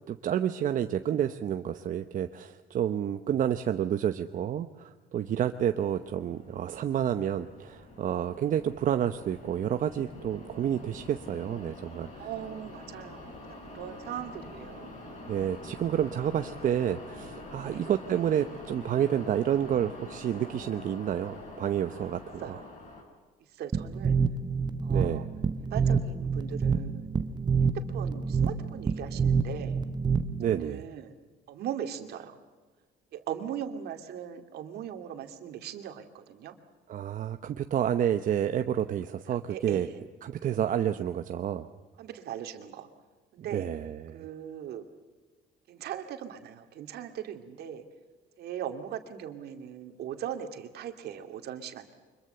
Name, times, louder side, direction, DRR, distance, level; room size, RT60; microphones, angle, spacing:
voice 1, 0.1-12.3 15.3-22.6 24.9-25.2 30.4-30.8 36.9-39.9 40.2-41.7 43.4-44.3, right 10 dB, 50° right, 8 dB, 0.9 m, -29 dB
sound 1, 5.1-23.0, left 2 dB, 45° left, 7.1 m, -46 dB
voice 2, 12.2-13.4 13.7-14.9 17.6-17.8 22.4-22.7 23.6-24.2 24.8-25.2 25.7-27.1 27.6-29.8 30.5-31.1 31.5-32.4 33.1-36.6 39.5-40.0 42.0-42.9 43.3-43.7 44.1-44.8 45.7-47.8 48.4-51.9, right 9 dB, 70° right, 7 dB, 2.4 m, -39 dB
sound 2, 23.7-30.6, right 5 dB, 25° right, 1.1 m, -27 dB
24.5 x 22.5 x 6.9 m, 1.4 s
cardioid pair, 110°, 17 cm